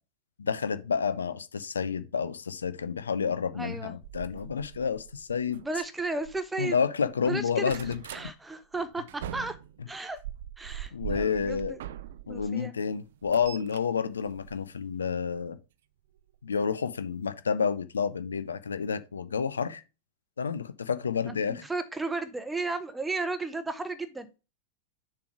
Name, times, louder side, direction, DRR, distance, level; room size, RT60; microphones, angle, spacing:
voice 1, 0.4-5.6 6.6-8.0 10.9-11.8 12.3-15.6 16.4-19.8 20.4-21.6, left 6 dB, 70° left, 0.6 m, -30 dB
voice 2, 3.6-3.9 5.5-6.7 7.2-7.8 8.1-9.6 9.9-10.2 10.6-11.8 12.3-12.7 21.3-24.4, right 3 dB, 10° right, 0.6 m, -34 dB
sound 1, 4.0-6.8 7.1-8.3 8.7-12.5 12.9-15.1 16.2-16.4 16.8-16.9 17.1-17.2, right 11 dB, 55° right, 0.4 m, -42 dB
6.9 x 3.3 x 6.0 m
figure-of-eight pair, 90°, 0 cm